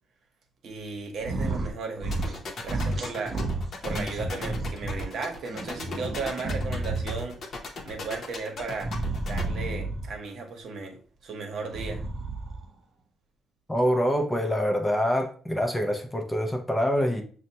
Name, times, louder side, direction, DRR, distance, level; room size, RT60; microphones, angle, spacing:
voice 1, 0.6-3.4 3.8-7.4 7.8-8.9 9.2-12.0, right 4 dB, 60° right, 3 dB, 0.9 m, -35 dB
sound 1, 1.2-1.7 2.0-2.4 2.7-5.0 5.5-7.4 8.8-10.2 11.6-12.7, right 2 dB, 35° right, 0.7 m, -31 dB
sound 2, 2.1-9.4, left 4 dB, 50° left, 0.7 m, -37 dB
voice 2, 13.7-17.2, equal, 10° left, 4 dB, 0.5 m, -25 dB
6.3 x 2.1 x 2.8 m, 0.43 s
cardioid pair, 140°, 0 cm